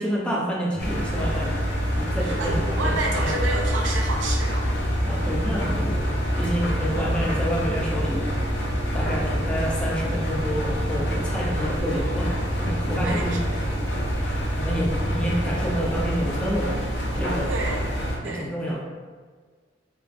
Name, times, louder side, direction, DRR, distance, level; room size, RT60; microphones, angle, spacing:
voice 1, 0.0-1.6 1.9-3.4 5.1-8.3 8.9-12.3 12.6-13.4 14.5-16.8 17.0-17.5 18.2-18.8, equal, 5° left, -4 dB, 0.4 m, -28 dB
sound 1, 0.7-16.1, right 1 dB, 80° left, 1.1 m, -33 dB
Engine, 0.8-18.2, equal, 65° left, 0.5 m, -27 dB
voice 2, 2.2-4.8 12.8-13.6 17.5-18.0 18.2-18.5, right 2 dB, 80° right, 0 dB, 0.5 m, -30 dB
2.3 x 2.3 x 2.4 m, 1.5 s
head